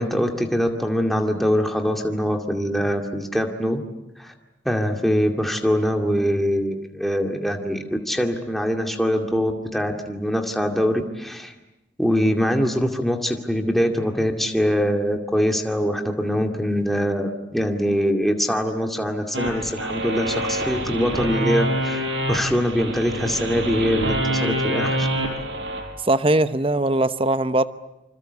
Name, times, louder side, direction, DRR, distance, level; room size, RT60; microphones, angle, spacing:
voice 1, 0.0-3.8 4.2-4.3 4.6-11.5 12.0-25.1, equal, ahead, 2.3 m, -23 dB
sound 1, 19.3-25.8, right 1 dB, 85° right, 5.4 m, -26 dB
voice 2, 26.0-27.6, right 2 dB, 30° right, 0.9 m, -20 dB
27.0 x 26.5 x 8.1 m
head